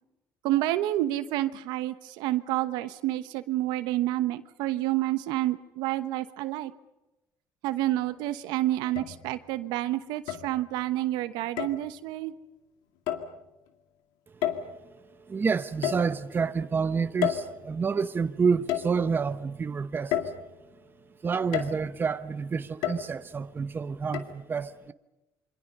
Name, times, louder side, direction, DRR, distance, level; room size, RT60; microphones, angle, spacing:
voice 1, 0.4-6.7 7.6-12.3, right 15 dB, 85° right, 1.1 m, -29 dB
sound 1, 7.9-8.0 9.0-9.6 10.3-10.9 11.6-11.9 13.1-13.4 14.4-14.9 15.8-16.5 17.2-18.1 18.7-19.4 20.1-20.9 21.5-22.0 22.8-23.4 24.1-24.2, left 10 dB, 90° left, 2.2 m, -32 dB
voice 2, 15.3-20.2 21.2-24.9, right 5 dB, 30° right, 1.1 m, -28 dB
27.5 x 24.5 x 5.5 m
cardioid pair, 105°, 7 cm